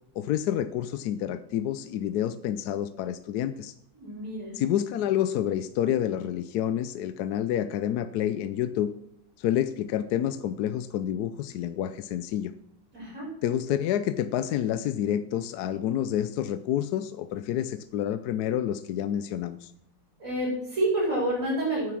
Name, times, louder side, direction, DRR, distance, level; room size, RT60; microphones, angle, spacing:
voice 1, 0.2-3.7 4.5-8.9 9.4-12.5 13.4-19.7, left 11 dB, 70° left, 11 dB, 1.0 m, -28 dB
voice 2, 3.9-4.6 12.9-13.3 20.2-21.9, right 1 dB, 45° right, -5 dB, 6.4 m, -28 dB
9.3 x 9.1 x 6.2 m, 0.75 s
omnidirectional pair, 2.0 m